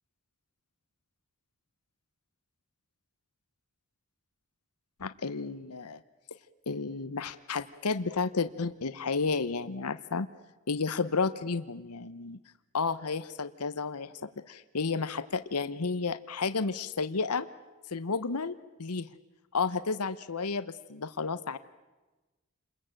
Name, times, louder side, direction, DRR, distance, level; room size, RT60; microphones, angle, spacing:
voice 1, 5.0-6.0 6.7-10.3 10.7-12.4 12.7-17.5 17.9-18.5 18.8-19.1 19.5-21.6, left 4 dB, 90° left, 13 dB, 1.0 m, -32 dB
29.0 x 21.5 x 9.0 m, 1.2 s
head